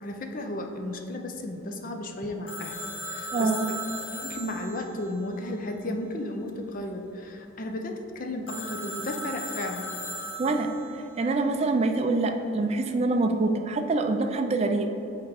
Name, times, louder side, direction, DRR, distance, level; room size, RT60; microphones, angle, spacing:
voice 1, 0.0-2.7 3.0-3.7 4.1-9.9, left 1 dB, 40° left, 4 dB, 0.5 m, -34 dB
Telephone, 2.5-6.1 8.5-11.0, equal, 60° left, 1.0 m, -37 dB
voice 2, 3.3-3.7 10.4-10.7 11.2-14.9, right 3 dB, 30° right, 5 dB, 0.3 m, -25 dB
7.8 x 3.7 x 4.8 m, 2.9 s
head